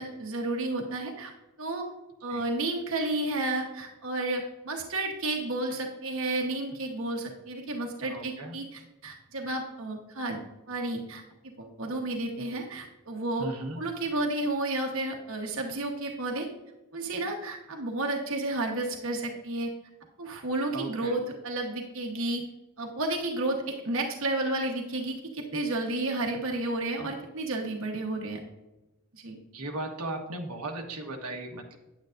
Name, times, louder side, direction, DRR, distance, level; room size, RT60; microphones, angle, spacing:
voice 1, 0.0-1.3 1.6-1.9 2.2-10.4 10.7-11.2 11.6-13.5 13.8-16.5 16.9-19.7 20.2-22.4 22.8-28.4 29.1-29.4, right 2 dB, 65° right, 1 dB, 1.1 m, -31 dB
voice 2, 8.0-8.5 13.4-13.8 20.7-21.1 29.5-31.8, right 2 dB, 85° right, 1 dB, 1.3 m, -36 dB
9.2 x 9.2 x 2.5 m, 1.0 s
head